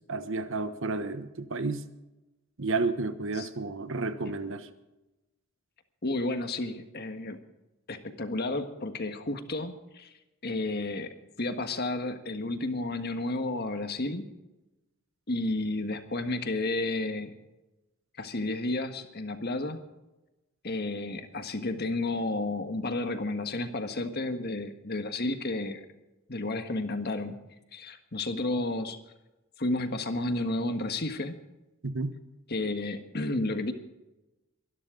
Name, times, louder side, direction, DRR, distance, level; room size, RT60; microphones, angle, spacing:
voice 1, 0.1-1.8 2.6-4.7 31.8-32.1, right 3 dB, 60° right, 11 dB, 1.1 m, -31 dB
voice 2, 6.0-7.4 7.9-10.1 10.4-14.2 15.3-17.3 18.2-19.8 20.6-25.8 26.3-27.4 27.7-29.0 29.6-31.4 32.5-33.7, left 2 dB, 45° left, 7 dB, 1.5 m, -32 dB
23.5 x 12.5 x 3.9 m, 1.0 s
head